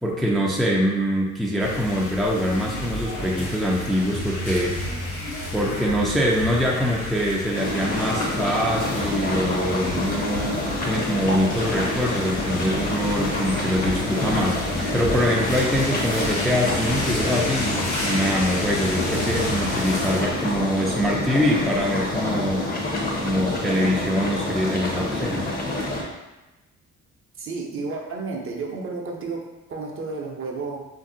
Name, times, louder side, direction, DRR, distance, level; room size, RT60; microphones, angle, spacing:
voice 1, 0.0-5.0 5.5-22.7 23.2-25.4, equal, ahead, -2 dB, 0.3 m, -24 dB
sound 1, 1.6-20.2, left 1 dB, 80° left, 1.0 m, -31 dB
sound 2, 7.5-26.0, left 2 dB, 30° left, 0.7 m, -27 dB
voice 2, 27.4-30.9, right 4 dB, 45° right, 0 dB, 0.6 m, -32 dB
2.6 x 2.0 x 3.7 m, 1.1 s
cardioid pair, 90°, 30 cm